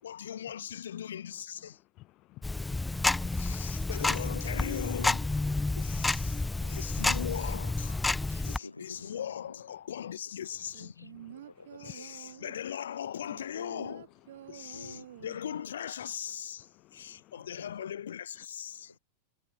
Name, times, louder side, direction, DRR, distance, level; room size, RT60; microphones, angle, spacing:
voice 1, 0.0-1.8 3.3-5.4 5.8-8.0 8.4-11.3 11.8-14.1 14.5-18.9, left 9 dB, 65° left, 5.8 m, -39 dB
voice 2, 2.0-3.7 5.6-5.8 6.3-6.8 8.1-8.5 11.8-11.9 14.4-14.5 16.8-17.3, left 19 dB, 40° left, 1.6 m, -55 dB
Tick-tock, 2.4-8.6, left 2 dB, 10° left, 0.5 m, -30 dB
voice 3, 6.2-6.8 8.3-9.6 10.1-10.2 11.0-12.4 14.7-15.1 15.4-15.7 17.6-17.9 18.9-19.0, left 3 dB, 80° left, 4.1 m, -50 dB
sound 1, 10.7-12.7 13.3-15.7 16.0-16.1, right 12 dB, 60° right, 3.1 m, -49 dB
figure-of-eight pair, 90°, 0 cm